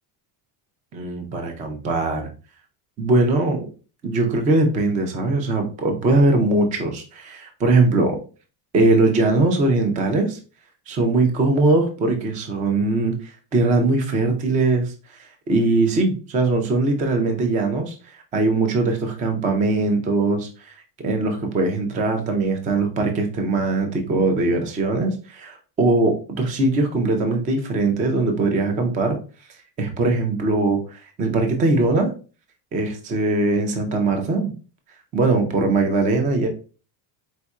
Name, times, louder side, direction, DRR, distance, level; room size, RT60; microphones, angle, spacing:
voice 1, 0.9-2.3 3.0-3.7 4.0-8.2 8.7-10.4 10.9-29.2 29.8-32.1 32.7-34.5 35.1-36.5, right 2 dB, 20° right, 5 dB, 0.3 m, -21 dB
4.3 x 4.0 x 2.3 m, 0.36 s
cardioid pair, 175°, 47 cm